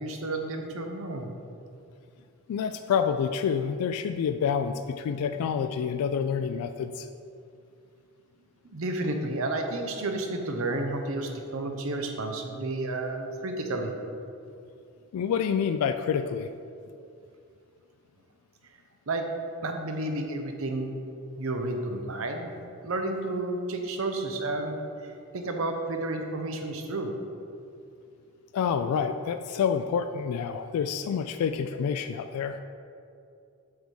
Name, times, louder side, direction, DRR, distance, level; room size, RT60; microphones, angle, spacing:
voice 1, 0.0-1.3 8.6-13.9 19.1-19.3 19.6-20.9 21.4-22.5 22.8-27.1, right 2 dB, 65° right, 4 dB, 0.8 m, -31 dB
voice 2, 2.5-7.1 15.1-16.5 28.5-32.6, left 7 dB, 80° left, 11 dB, 0.3 m, -28 dB
7.8 x 3.6 x 6.2 m, 2.5 s
head